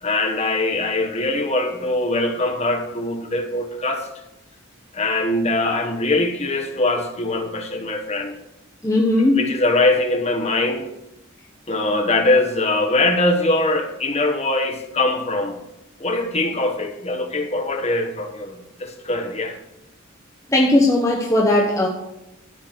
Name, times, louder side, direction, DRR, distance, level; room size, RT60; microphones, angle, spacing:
voice 1, 0.0-4.1 4.9-8.3 9.2-10.8 11.7-15.6 16.0-19.6, left 2 dB, 30° left, 5 dB, 1.3 m, -22 dB
voice 2, 8.8-9.4 20.5-21.9, left 1 dB, 15° left, -1 dB, 1.0 m, -17 dB
13.0 x 4.9 x 8.1 m, 0.91 s
head